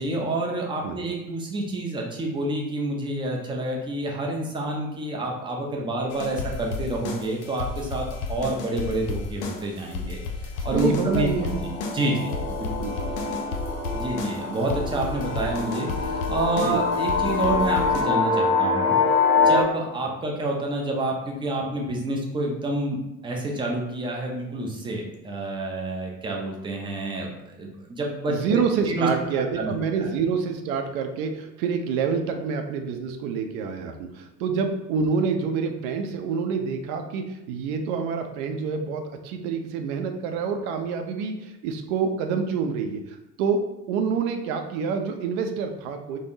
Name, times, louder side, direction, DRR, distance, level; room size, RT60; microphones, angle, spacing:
voice 1, 0.0-12.7 13.9-23.0 23.2-27.3 27.6-28.6 28.9-29.1 29.3-29.7 30.0-30.1, right 2 dB, 10° right, -1 dB, 0.4 m, -28 dB
sound 1, 6.1-18.0, left 4 dB, 55° left, 0.7 m, -33 dB
sound 2, 10.6-19.6, left 4 dB, 25° left, 1.2 m, -25 dB
voice 2, 10.7-11.6 12.8-13.4 16.6-16.8 28.3-46.2, right 5 dB, 55° right, 6 dB, 0.6 m, -27 dB
3.3 x 2.1 x 2.6 m, 0.95 s
figure-of-eight pair, 65°, 49 cm